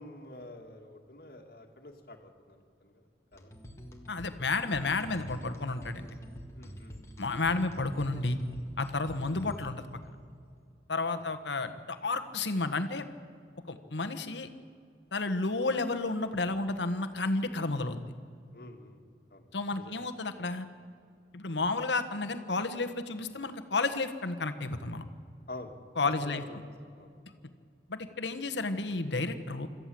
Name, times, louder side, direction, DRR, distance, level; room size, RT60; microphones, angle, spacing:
voice 1, 0.0-3.5 6.5-7.2 11.1-11.2 18.5-19.0 19.3-19.4 19.8-20.0 25.5-25.8 26.0-26.6 26.9-27.1, left 2 dB, 55° left, 4 dB, 2.2 m, -47 dB
sound 1, 3.3-10.0, equal, 15° left, 1.8 m, -47 dB
voice 2, 4.1-6.1 7.2-8.4 8.8-9.9 10.9-13.0 13.7-14.5 15.1-18.0 19.5-20.7 21.3-25.0 26.0-26.4 27.9-29.7, left 3 dB, 80° left, 10 dB, 1.4 m, -31 dB
26.5 x 14.0 x 7.8 m, 2.4 s
head